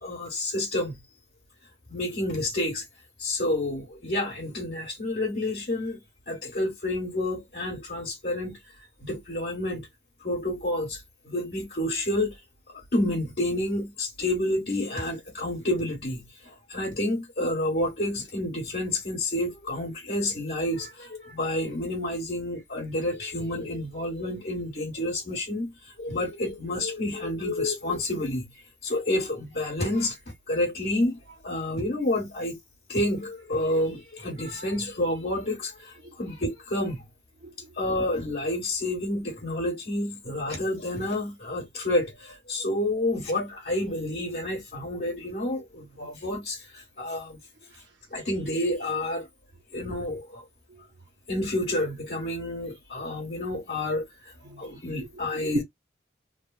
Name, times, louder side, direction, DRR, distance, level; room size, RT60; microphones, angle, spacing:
voice 1, 0.0-1.0 1.9-2.8 3.2-6.0 6.3-8.6 9.0-9.9 10.2-12.3 12.9-25.7 26.0-28.5 28.8-30.2 30.5-32.6 32.9-37.1 37.7-47.4 48.1-49.3 49.7-50.4 51.3-54.1 54.6-55.6, left 1 dB, 55° left, 1.5 m, -29 dB
voice 2, 37.4-37.7 46.0-46.1 50.7-50.8 54.4-55.1 55.4-55.6, right 3 dB, 80° right, 0.8 m, -37 dB
3.3 x 2.2 x 2.4 m
head